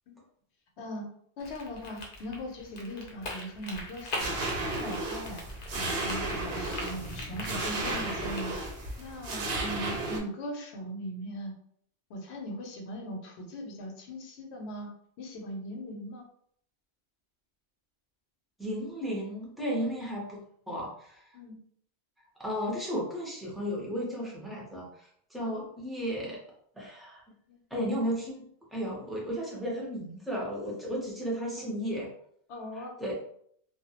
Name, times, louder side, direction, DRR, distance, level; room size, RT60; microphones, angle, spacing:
voice 1, 1.4-4.5 4.8-5.4 5.7-8.5 9.0-11.5 12.1-14.9 15.2-16.2 19.8-19.9 21.3-21.6 25.5-25.6 27.5-27.6 32.5-32.9, equal, 75° left, 1 dB, 0.8 m, -39 dB
sound 1, 1.4-9.1, left 1 dB, 50° left, 0.5 m, -42 dB
sound 2, 4.2-10.2, right 2 dB, 65° right, 0.8 m, -34 dB
voice 2, 18.6-21.2 22.4-26.4 26.8-27.2 27.7-32.1 32.7-33.1, equal, ahead, -5 dB, 0.5 m, -34 dB
2.3 x 2.0 x 2.8 m, 0.65 s
omnidirectional pair, 1.1 m